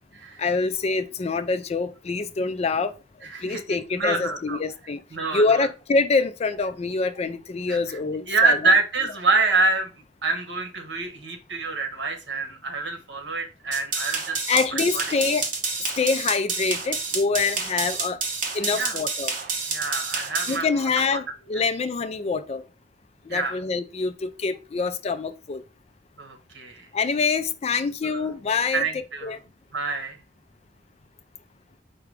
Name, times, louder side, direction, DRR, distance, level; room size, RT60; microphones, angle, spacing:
voice 1, 0.4-2.9 3.4-5.0 5.3-8.6 14.5-15.5 16.0-18.2 18.5-19.3 20.5-22.6 23.3-25.6 26.9-29.4, left 4 dB, 35° left, 0.4 m, -25 dB
voice 2, 3.2-4.6 5.1-5.7 7.7-8.0 8.3-9.9 10.2-14.6 14.9-15.0 18.7-19.0 19.7-21.2 23.3-23.6 26.2-26.9 28.0-28.2 28.7-29.4 29.7-30.2, right 3 dB, 70° right, 1.2 m, -26 dB
sound 1, 13.7-20.6, right 4 dB, 45° right, 1.0 m, -29 dB
4.8 x 2.3 x 4.7 m
head